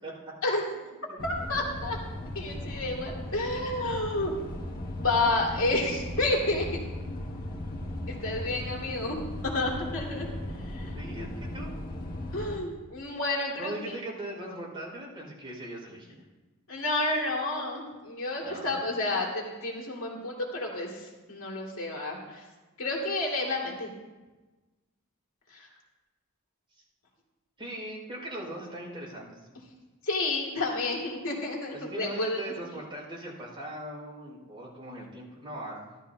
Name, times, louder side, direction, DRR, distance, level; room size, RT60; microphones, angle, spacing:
voice 1, 0.0-0.5 0.8-1.2 10.8-11.7 13.6-16.2 18.4-18.8 26.7-26.8 27.6-29.4 31.7-36.0, right 1 dB, 25° right, -3 dB, 4.9 m, -40 dB
voice 2, 1.2-2.0 2.3-4.4 5.0-6.8 8.1-9.2 9.4-10.2 10.6-11.0 12.3-13.9 16.7-22.4 22.8-23.9 25.5-25.7 30.0-32.4, left 2 dB, 65° left, -1 dB, 2.4 m, -30 dB
sound 1, 1.2-12.6, left 1 dB, 45° left, 1.6 m, -37 dB
16.5 x 12.0 x 2.8 m, 1.2 s
head